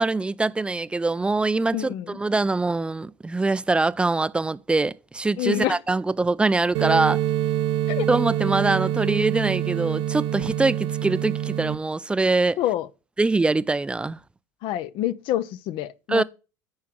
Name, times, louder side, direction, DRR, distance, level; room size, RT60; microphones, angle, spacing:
voice 1, 0.0-7.2 8.1-12.6 13.2-14.2 16.1-16.2, right 3 dB, 10° right, 0.4 m, -23 dB
voice 2, 1.7-2.2 5.4-5.8 7.9-8.1 12.6-12.9 14.6-16.2, left 13 dB, 55° left, 0.6 m, -27 dB
sound 1, 6.7-11.7, right 11 dB, 60° right, 1.3 m, -26 dB
9.5 x 4.7 x 5.9 m
hypercardioid pair, 95°, 10 cm